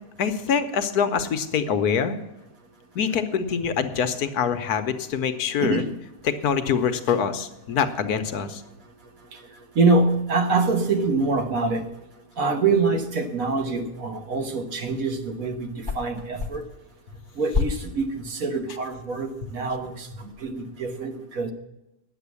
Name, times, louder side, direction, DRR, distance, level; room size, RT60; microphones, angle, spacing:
voice 1, 0.2-2.2 2.9-5.8 6.2-8.6, left 7 dB, 70° left, 9 dB, 1.3 m, -24 dB
voice 2, 5.6-5.9 9.7-11.9 12.4-16.6 17.4-21.5, right 3 dB, 60° right, 6 dB, 1.5 m, -25 dB
sound 1, 15.7-20.5, left 5 dB, 15° right, 1.2 m, -34 dB
10.0 x 7.8 x 8.3 m, 0.93 s
omnidirectional pair, 1.8 m